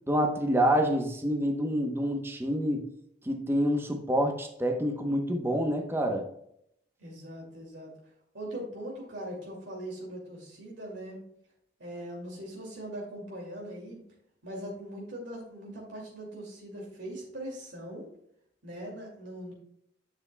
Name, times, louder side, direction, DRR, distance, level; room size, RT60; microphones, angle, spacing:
voice 1, 0.1-2.9 3.2-6.3, equal, 15° right, 3 dB, 0.9 m, -27 dB
voice 2, 7.0-7.9 8.3-11.2 11.8-14.0 14.4-18.1 18.6-19.5, right 1 dB, 70° right, -2 dB, 2.4 m, -41 dB
10.0 x 7.2 x 2.2 m, 0.73 s
head